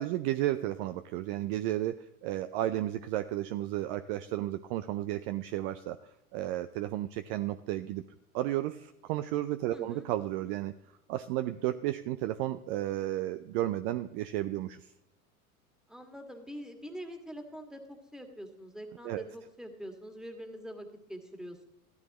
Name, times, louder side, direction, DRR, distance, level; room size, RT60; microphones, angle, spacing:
voice 1, 0.0-6.0 6.3-8.0 8.3-10.7 11.1-14.9 19.0-19.2, right 14 dB, 40° right, 11 dB, 0.5 m, -33 dB
voice 2, 9.7-10.1 15.9-21.6, equal, ahead, 4 dB, 1.9 m, -44 dB
15.0 x 13.0 x 3.0 m, 0.85 s
figure-of-eight pair, 85°, 43 cm